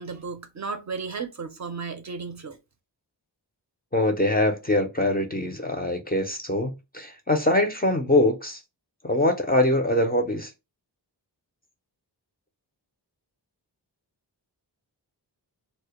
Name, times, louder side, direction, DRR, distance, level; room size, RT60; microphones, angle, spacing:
voice 1, 0.0-2.6, right 4 dB, 45° right, 0.4 m, -34 dB
voice 2, 3.9-8.6 9.0-10.5, left 1 dB, 25° left, 0.4 m, -23 dB
2.1 x 2.0 x 2.8 m
wide cardioid pair, 95°, 43 cm